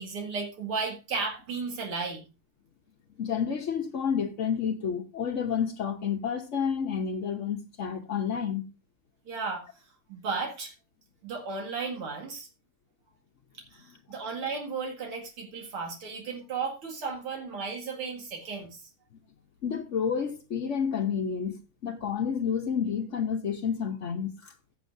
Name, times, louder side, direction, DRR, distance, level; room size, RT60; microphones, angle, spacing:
voice 1, 0.0-2.3 9.3-9.8 10.1-10.7 11.2-12.5 13.5-18.8, right 4 dB, 80° right, 2.9 m, -34 dB
voice 2, 3.2-8.6 19.6-24.5, left 7 dB, 55° left, 0.8 m, -30 dB
16.0 x 7.3 x 2.6 m
omnidirectional pair, 2.4 m